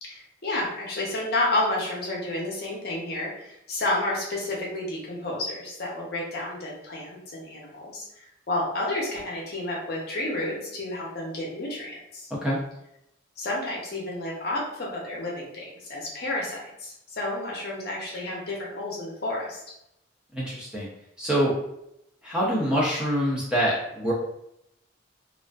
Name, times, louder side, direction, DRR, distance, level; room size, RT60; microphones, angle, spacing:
voice 1, 0.0-8.0 8.5-12.3 13.4-19.6, left 1 dB, 50° left, -3 dB, 0.6 m, -30 dB
voice 2, 20.3-20.9 21.2-21.5 22.2-24.1, equal, 5° right, -6 dB, 0.4 m, -25 dB
2.4 x 2.4 x 2.3 m, 0.81 s
head